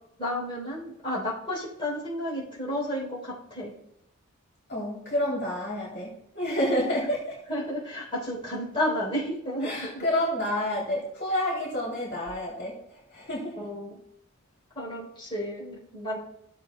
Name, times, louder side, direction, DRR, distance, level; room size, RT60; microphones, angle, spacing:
voice 1, 0.2-3.7 7.5-10.0 13.6-14.0 14.7-16.2, left 1 dB, 25° left, -7 dB, 3.3 m, -32 dB
voice 2, 4.7-7.4 9.6-13.6, left 1 dB, 50° left, -5 dB, 2.8 m, -29 dB
15.5 x 7.5 x 2.2 m, 0.77 s
head